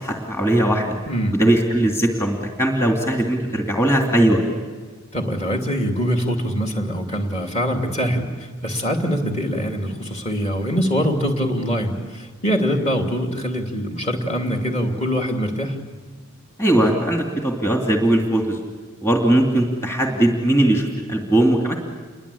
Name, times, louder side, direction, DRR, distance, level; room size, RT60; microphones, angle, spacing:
voice 1, 0.0-0.9 1.3-4.4 16.6-18.6 19.0-21.8, right 1 dB, 10° left, 1 dB, 2.6 m, -19 dB
voice 2, 1.1-1.4 5.1-15.8, equal, 30° left, 3 dB, 2.8 m, -23 dB
29.0 x 23.0 x 8.5 m, 1.4 s
head